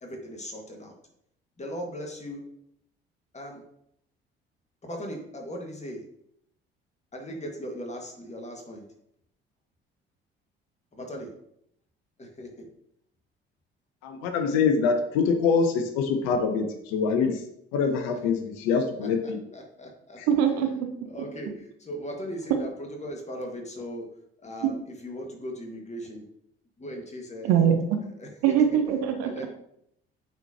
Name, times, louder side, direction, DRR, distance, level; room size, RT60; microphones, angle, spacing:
voice 1, 0.0-0.9 1.6-2.4 3.3-3.6 4.8-6.1 7.1-8.8 10.9-11.3 12.2-12.7 19.2-20.2 21.1-24.1 24.4-26.3 26.8-27.7 28.0-28.3 28.7-28.8 29.2-29.5, equal, 25° left, 2 dB, 1.7 m, -38 dB
voice 2, 14.0-17.4 17.7-19.4 20.2-20.3, left 5 dB, 60° left, 7 dB, 0.7 m, -25 dB
voice 3, 20.3-20.9 24.6-24.7 27.4-27.8 28.4-29.5, right 9 dB, 60° right, 6 dB, 0.8 m, -22 dB
8.8 x 4.3 x 2.8 m, 0.74 s
figure-of-eight pair, 50°, 29 cm